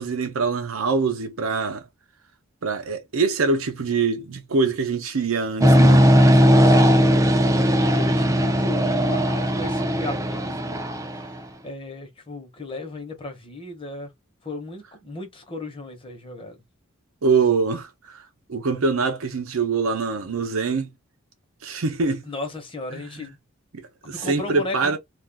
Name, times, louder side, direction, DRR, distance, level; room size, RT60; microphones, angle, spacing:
voice 1, 0.0-1.8 2.6-6.1 17.2-18.2 18.5-20.9 21.6-22.2 22.9-23.3 23.7-25.0, right 4 dB, 85° right, 0.7 m, -24 dB
sound 1, 5.6-11.4, equal, 15° right, 0.3 m, -18 dB
voice 2, 6.3-7.0 7.5-10.9 11.6-14.1 14.4-16.6 22.2-23.4 24.0-25.0, left 2 dB, 25° left, 0.9 m, -35 dB
2.4 x 2.3 x 3.4 m
head